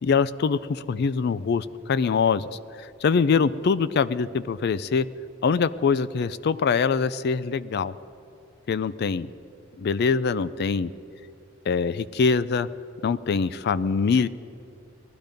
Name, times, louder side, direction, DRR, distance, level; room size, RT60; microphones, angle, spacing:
voice 1, 0.0-2.5 2.8-5.1 5.4-7.9 8.7-9.3 9.8-10.9 11.7-12.7 13.0-14.3, left 5 dB, 55° left, 17 dB, 0.4 m, -23 dB
18.5 x 12.0 x 5.2 m, 2.7 s
head